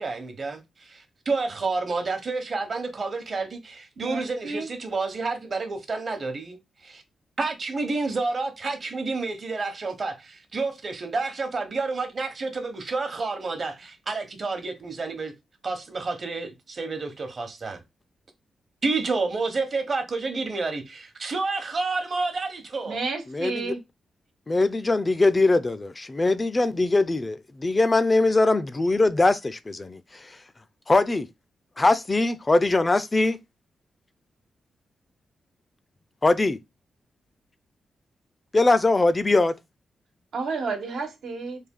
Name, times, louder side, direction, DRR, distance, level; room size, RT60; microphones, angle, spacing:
voice 1, 0.0-7.0 7.4-15.3 15.6-17.8 18.8-23.0, right 3 dB, 50° right, 1.0 m, -29 dB
voice 2, 4.0-4.7 22.8-23.8 40.3-41.6, right 4 dB, 85° right, 1.1 m, -31 dB
voice 3, 23.3-23.7 24.5-30.3 30.9-31.3 31.8-33.4 36.2-36.6 38.5-39.5, left 2 dB, 30° left, 0.4 m, -21 dB
3.4 x 2.3 x 3.6 m
cardioid pair, 70°, 0 cm